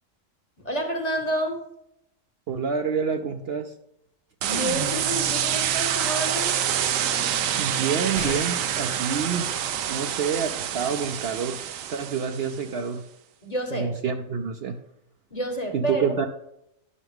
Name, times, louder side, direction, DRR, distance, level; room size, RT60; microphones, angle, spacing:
voice 1, 0.6-1.6 4.4-6.6 13.4-14.0 15.3-16.1, right 1 dB, 30° left, 3 dB, 1.2 m, -29 dB
voice 2, 2.5-3.7 7.6-9.5 9.9-11.6 11.9-13.0 13.7-14.7 15.7-16.3, right 6 dB, 60° right, 6 dB, 0.7 m, -27 dB
sound 1, 4.4-12.6, right 9 dB, 90° right, 1.0 m, -27 dB
sound 2, 8.1-8.9 10.8-10.9 11.2-11.3, left 5 dB, 65° left, 0.3 m, -37 dB
11.0 x 5.8 x 3.5 m, 0.80 s
omnidirectional pair, 1.3 m